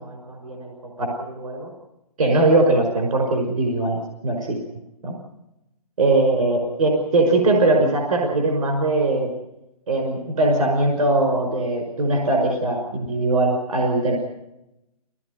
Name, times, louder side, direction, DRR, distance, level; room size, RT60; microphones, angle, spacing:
voice 1, 0.0-1.7 2.2-4.6 5.0-5.1 6.0-9.3 9.9-14.2, right 2 dB, 70° right, 1 dB, 5.6 m, -21 dB
21.0 x 18.5 x 9.5 m, 0.92 s
hypercardioid pair, 160°, 19 cm